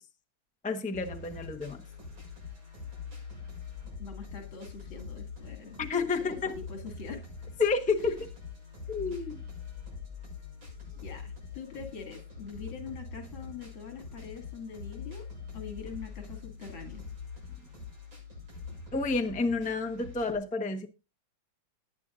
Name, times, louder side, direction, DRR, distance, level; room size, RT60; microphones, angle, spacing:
voice 1, 0.6-1.8 5.8-6.6 7.6-8.3 8.9-9.4 18.9-20.9, left 4 dB, 5° left, 0.7 m, -30 dB
sound 1, 0.9-20.3, left 5 dB, 80° right, 7.6 m, -44 dB
voice 2, 4.0-5.8 6.1-7.2 11.0-15.2 15.5-17.0, left 5 dB, 80° left, 3.2 m, -43 dB
18.5 x 9.4 x 2.5 m
omnidirectional pair, 2.2 m